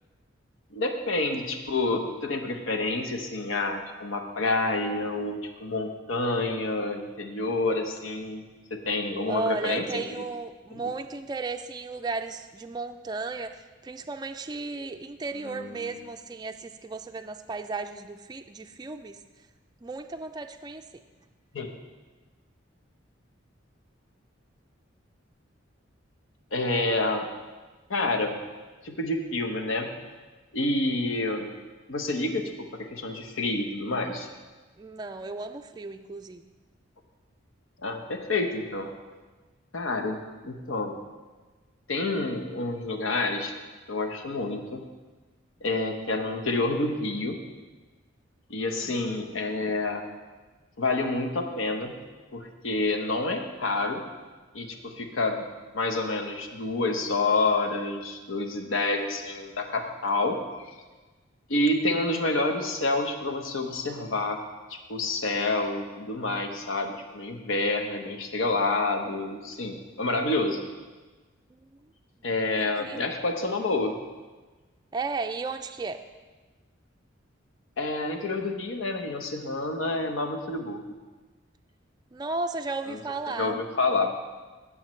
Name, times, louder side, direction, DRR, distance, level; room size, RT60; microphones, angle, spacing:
voice 1, 0.7-8.4 8.7-10.0 10.7-10.9 15.4-16.0 21.5-21.7 26.5-27.3 27.9-28.4 28.8-29.9 30.5-31.5 31.9-34.3 37.8-38.9 39.7-40.2 40.4-40.9 41.9-43.5 43.9-44.8 45.6-47.4 48.5-50.0 50.8-52.0 52.3-54.0 54.5-55.4 55.7-60.7 61.5-64.4 64.7-70.6 72.2-74.0 77.8-80.9 82.9-83.0 83.4-84.1, left 2 dB, 90° left, 4 dB, 1.0 m, -28 dB
voice 2, 9.3-19.2 19.8-20.8 34.8-36.5 48.7-49.0 72.6-73.1 74.9-76.0 82.1-83.6, right 3 dB, 20° right, 6 dB, 0.3 m, -34 dB
16.5 x 6.5 x 3.2 m, 1.3 s
head